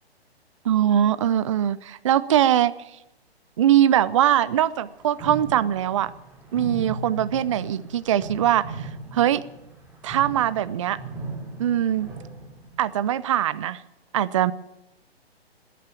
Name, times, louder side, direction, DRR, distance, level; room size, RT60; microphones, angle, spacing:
voice 1, 0.6-2.7 3.6-6.1 6.5-9.4 10.0-11.0 11.6-12.1 12.8-13.8 14.1-14.5, right 11 dB, 30° right, 16 dB, 0.5 m, -22 dB
sound 1, 4.3-4.5 4.8-13.0, right 3 dB, 5° right, 3.0 m, -38 dB
19.5 x 9.2 x 7.5 m, 0.89 s
figure-of-eight pair, 135°, 32 cm